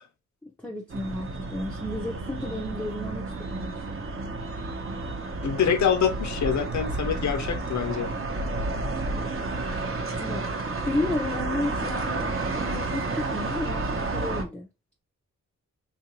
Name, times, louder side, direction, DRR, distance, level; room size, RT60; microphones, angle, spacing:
voice 1, 0.4-3.8 9.1-9.4 10.2-10.5 10.8-14.7, left 2 dB, 5° left, 0.6 m, -33 dB
sound 1, 0.9-14.4, right 2 dB, 45° right, 0.8 m, -31 dB
voice 2, 5.4-8.1, left 7 dB, 70° left, 0.7 m, -25 dB
3.7 x 2.5 x 2.9 m
wide cardioid pair, 140°, 30 cm